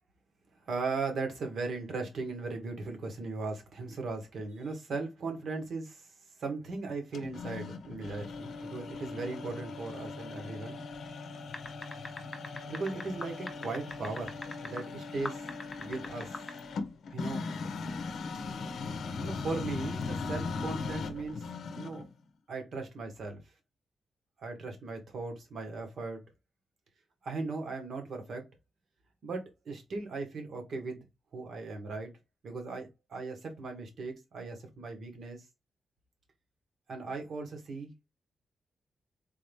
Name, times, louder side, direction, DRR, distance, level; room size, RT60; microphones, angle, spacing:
voice 1, 0.6-6.1 6.4-10.8 12.7-15.4 15.8-16.4 17.1-17.5 19.2-21.4 21.8-22.0 22.5-23.4 24.4-26.2 27.2-28.4 29.2-31.1 31.3-32.1 32.4-35.4 36.9-37.9, right 3 dB, 60° right, 1.4 m, -38 dB
sound 1, 7.1-22.1, left 4 dB, 70° left, 0.6 m, -39 dB
sound 2, 11.5-14.8 15.2-16.6, left 2 dB, 20° left, 0.7 m, -40 dB
3.8 x 2.8 x 3.5 m
wide cardioid pair, 150°, 0 cm